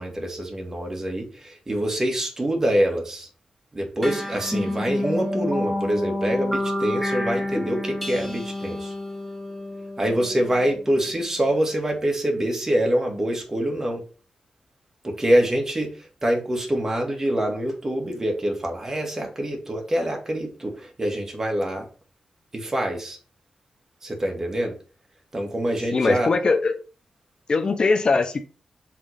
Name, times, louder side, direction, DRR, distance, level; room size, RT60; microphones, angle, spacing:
voice 1, 0.0-3.3 3.7-8.9 10.0-14.0 15.0-21.9 22.5-23.2 24.0-24.7 25.3-26.3, right 1 dB, 25° right, 1 dB, 2.0 m, -25 dB
sound 1, 4.0-10.9, left 1 dB, ahead, 1.2 m, -29 dB
voice 2, 25.9-26.8 27.5-28.4, left 4 dB, 45° left, 8 dB, 0.7 m, -21 dB
5.8 x 3.7 x 5.0 m, 0.35 s
wide cardioid pair, 100°, 2 cm